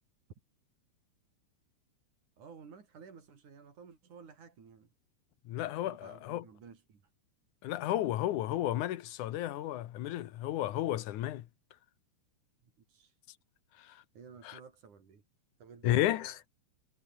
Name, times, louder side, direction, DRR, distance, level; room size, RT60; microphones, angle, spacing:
voice 1, 2.4-4.9 5.8-7.1 12.9-13.2 14.1-15.2 15.6-16.3, right 6 dB, 85° right, 5.3 m, -54 dB
voice 2, 5.5-6.4 7.6-11.5 13.8-14.0 14.4-14.6 15.8-16.3, left 13 dB, 85° left, 2.6 m, -32 dB
omnidirectional pair, 3.4 m